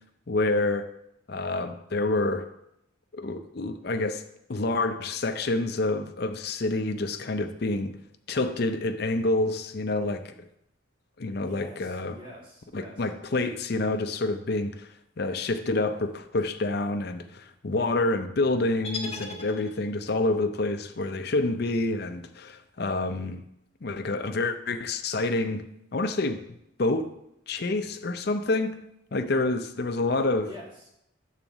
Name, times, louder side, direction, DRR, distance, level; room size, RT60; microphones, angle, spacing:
voice 1, 0.3-0.9 1.3-2.5 3.1-4.2 4.5-7.9 8.3-10.3 11.2-12.2 12.7-14.9 15.2-23.4 23.8-25.6 25.9-26.4 26.8-27.1 27.5-28.7 29.1-30.5, left 2 dB, 50° left, 8 dB, 0.5 m, -27 dB
voice 2, 11.4-13.1 30.5-30.9, left 1 dB, 25° right, -3 dB, 1.7 m, -46 dB
sound 1, 18.8-20.1, left 3 dB, 30° left, 0.9 m, -37 dB
7.1 x 4.0 x 6.0 m, 0.79 s
head